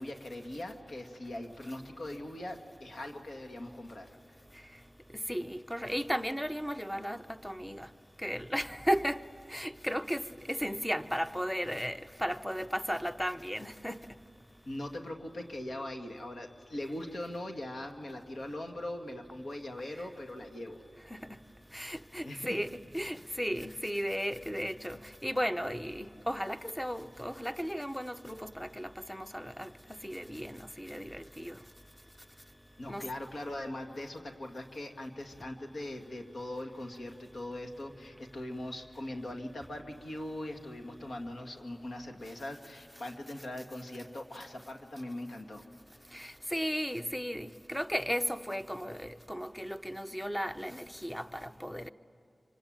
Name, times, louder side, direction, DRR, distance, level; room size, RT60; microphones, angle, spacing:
voice 1, 0.0-4.4 14.7-20.8 22.2-22.6 32.8-45.6, left 1 dB, 75° left, 2.2 m, -41 dB
voice 2, 5.1-7.9 8.2-9.2 9.5-14.0 21.1-21.2 21.7-29.7 30.0-31.6 32.9-33.0 46.1-51.9, equal, 5° left, 0.8 m, -35 dB
25.5 x 25.0 x 8.9 m
wide cardioid pair, 80°, 0 cm